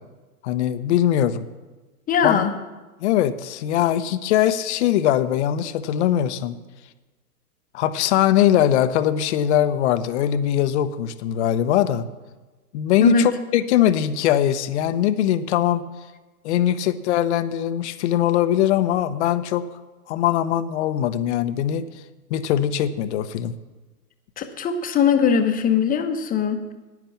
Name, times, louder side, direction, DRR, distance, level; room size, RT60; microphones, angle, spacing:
voice 1, 0.4-1.5 2.2-2.4 3.0-6.6 7.7-12.0 12.7-15.8 16.4-19.6 20.1-21.8 22.3-23.5, left 11 dB, 45° left, 13 dB, 0.9 m, -21 dB
voice 2, 2.1-2.5 13.0-13.3 24.4-26.7, left 6 dB, 20° left, 7 dB, 1.1 m, -20 dB
10.5 x 9.9 x 7.0 m, 1.2 s
hypercardioid pair, 115°, 47 cm